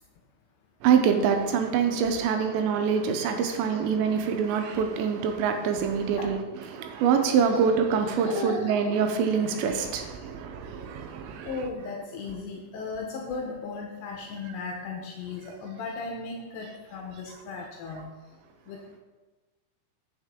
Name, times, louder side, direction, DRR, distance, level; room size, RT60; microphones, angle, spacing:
voice 1, 0.8-6.4 6.7-11.5, right 6 dB, 80° right, 5 dB, 2.8 m, -25 dB
voice 2, 8.1-8.8 11.5-18.1 18.7-19.0, left 4 dB, 80° left, 0 dB, 2.8 m, -36 dB
8.3 x 6.7 x 3.5 m, 1.2 s
omnidirectional pair, 5.4 m